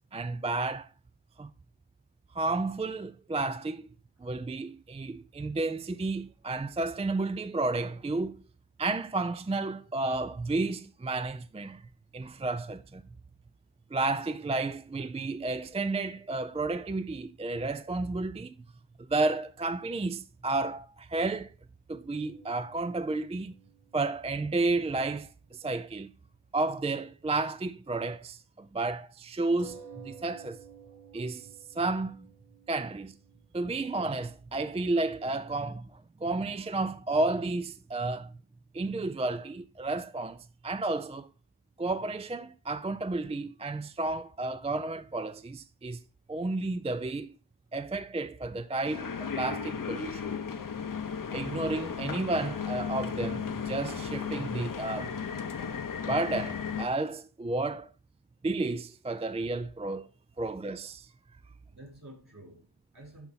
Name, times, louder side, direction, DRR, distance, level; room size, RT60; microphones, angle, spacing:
voice 1, 0.1-0.9 1.4-1.5 2.3-3.9 4.2-8.4 8.8-11.8 12.1-13.0 13.9-18.5 19.1-21.5 21.9-23.6 23.9-26.1 26.5-30.6 31.1-31.5 31.8-32.3 32.7-33.1 33.5-35.9 36.2-38.3 38.7-41.3 41.8-46.0 46.3-47.3 47.7-50.4 51.3-55.2 56.1-57.9 58.4-60.1 60.4-61.1, right 2 dB, 15° right, 0.3 m, -32 dB
sound 1, 22.1-26.0 26.3-26.4 29.6-34.8, right 7 dB, 65° right, 1.1 m, -54 dB
sound 2, 48.8-56.9, left 6 dB, 50° left, 0.7 m, -35 dB
voice 2, 61.7-63.3, right 1 dB, 50° right, 3.8 m, -51 dB
11.5 x 4.3 x 4.0 m
wide cardioid pair, 70°, 42 cm